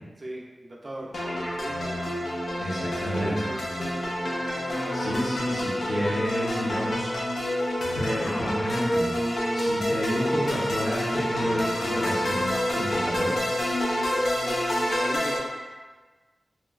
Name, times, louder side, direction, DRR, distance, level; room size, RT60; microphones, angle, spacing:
voice 1, 0.2-2.2 2.5-4.2 14.0-15.6, right 1 dB, 40° right, -2 dB, 0.5 m, -39 dB
sound 1, 1.1-15.4, equal, 70° left, 0.5 m, -28 dB
voice 2, 2.6-3.4 4.9-7.1 7.9-9.1 9.5-13.4, equal, 40° left, -10 dB, 0.8 m, -30 dB
3.0 x 2.7 x 2.3 m, 1.3 s
wide cardioid pair, 85°, 0 cm